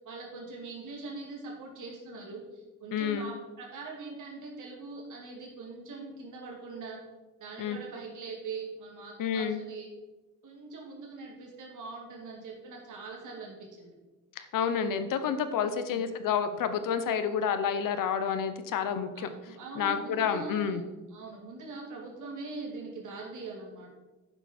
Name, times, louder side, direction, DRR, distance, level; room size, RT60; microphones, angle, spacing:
voice 1, 0.0-7.0 7.4-9.9 10.4-13.9 15.7-16.1 19.1-20.8 21.1-23.9, right 3 dB, 65° right, -1 dB, 2.3 m, -42 dB
voice 2, 2.9-3.3 7.6-7.8 9.2-9.6 14.4-19.3 19.7-20.8, left 7 dB, 75° left, 10 dB, 0.9 m, -29 dB
10.0 x 6.9 x 4.3 m, 1.2 s
wide cardioid pair, 160°, 33 cm